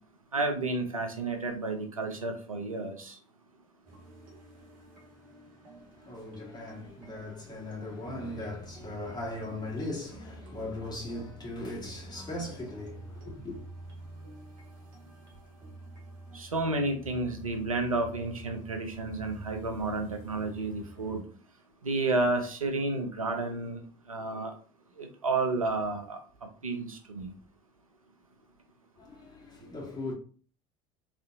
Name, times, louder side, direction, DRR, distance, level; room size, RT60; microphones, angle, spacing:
voice 1, 0.3-3.2 16.3-21.2 21.8-23.8 24.1-24.5 25.0-26.2 26.6-27.3, right 2 dB, 90° right, 0.6 m, -31 dB
sound 1, 3.8-21.2, right 2 dB, 50° right, 1.6 m, -49 dB
voice 2, 6.0-13.6 29.0-30.1, left 2 dB, 25° left, 1.9 m, -38 dB
3.8 x 3.2 x 2.6 m
figure-of-eight pair, 70°, 17 cm